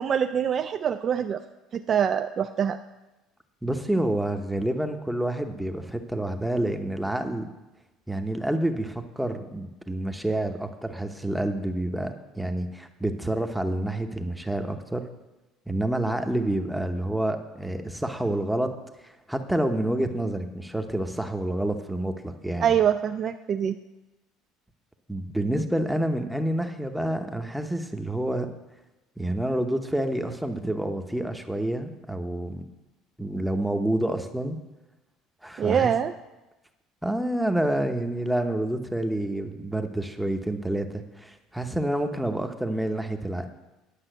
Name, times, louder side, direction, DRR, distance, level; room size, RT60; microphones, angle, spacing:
voice 1, 0.0-1.4 1.7-2.8 22.6-23.8 35.6-36.1, right 8 dB, 40° right, 8 dB, 0.4 m, -24 dB
voice 2, 3.6-7.5 8.1-15.0 15.7-18.7 19.0-22.7 25.1-28.5 29.2-32.6 33.2-34.6 35.4-35.9 37.0-43.5, right 1 dB, 5° right, 6 dB, 0.8 m, -28 dB
10.0 x 5.6 x 7.8 m, 1.0 s
cardioid pair, 115°, 0 cm